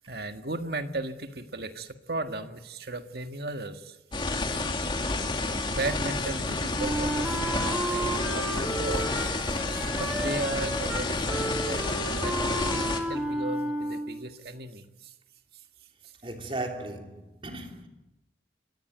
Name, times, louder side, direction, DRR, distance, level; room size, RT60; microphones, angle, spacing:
voice 1, 0.1-4.0 5.1-5.2 5.7-9.1 10.0-15.1, right 2 dB, 55° right, 1.8 m, -36 dB
sound 1, 4.1-13.0, left 2 dB, 25° left, 2.6 m, -30 dB
Wind instrument woodwind instrument, 6.8-14.3, right 1 dB, 5° right, 1.6 m, -33 dB
voice 2, 16.2-17.9, right 2 dB, 30° right, 3.1 m, -36 dB
27.5 x 23.5 x 9.2 m
head